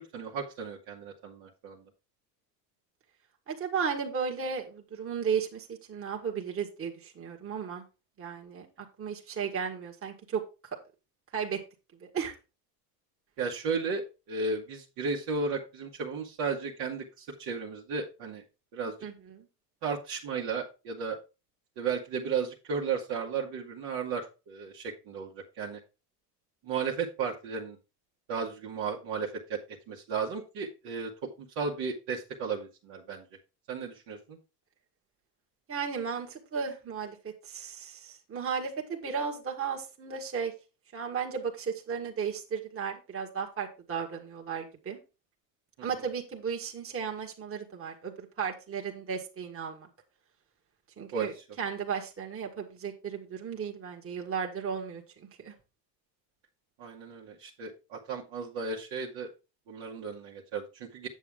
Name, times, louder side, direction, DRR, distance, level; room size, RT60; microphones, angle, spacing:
voice 1, 0.0-1.8 13.4-14.0 14.3-18.4 18.7-18.9 19.8-21.2 21.8-25.8 26.6-27.8 28.3-29.6 29.9-31.1 31.4-33.2 33.7-34.4 45.8-45.9 51.1-51.3 56.8-59.3 59.7-61.1, right 5 dB, 55° right, -2 dB, 1.8 m, -34 dB
voice 2, 3.5-7.8 8.2-8.7 9.0-10.4 11.3-11.6 12.0-12.3 19.0-19.5 35.7-37.2 37.4-40.5 40.9-45.0 45.8-49.9 51.0-51.3 51.6-55.5, right 6 dB, 25° right, 1 dB, 1.8 m, -35 dB
8.3 x 7.3 x 3.6 m, 0.29 s
supercardioid pair, 105°, 49 cm